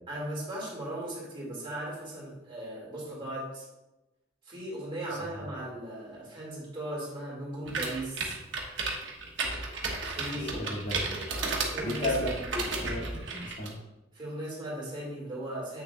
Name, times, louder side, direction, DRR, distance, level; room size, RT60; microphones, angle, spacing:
voice 1, 0.1-3.7 4.4-8.3 10.0-10.8 11.7-12.0 14.1-15.8, right 1 dB, 25° right, -5 dB, 2.5 m, -37 dB
sound 1, 7.7-13.7, right 3 dB, 70° right, 1.2 m, -33 dB
voice 2, 10.4-11.0 11.8-13.8, left 1 dB, 40° left, -5 dB, 2.3 m, -34 dB
8.0 x 6.6 x 2.4 m, 0.99 s
head